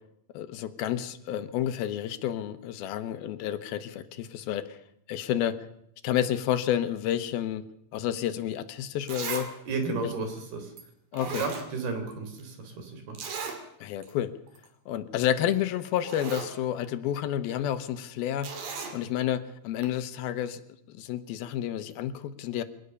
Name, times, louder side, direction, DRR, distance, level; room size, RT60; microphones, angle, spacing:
voice 1, 0.3-4.8 5.1-5.7 6.0-7.6 7.9-9.5 11.1-11.5 13.8-14.3 14.9-20.6 21.0-22.6, left 11 dB, 80° left, 12 dB, 2.8 m, -30 dB
Zipper (clothing), 8.5-8.6 9.1-9.5 9.8-9.9 10.8-10.9 11.1-12.1 12.4-12.5 13.2-13.6 14.0-14.1 14.5-14.7 15.5-15.6 15.9-16.5 18.4-19.0 19.8-19.9, right 5 dB, 65° right, 4.1 m, -36 dB
voice 2, 9.7-10.7 11.2-13.2, right 4 dB, 80° right, 6 dB, 5.4 m, -33 dB
23.5 x 18.0 x 6.8 m, 0.76 s
omnidirectional pair, 4.4 m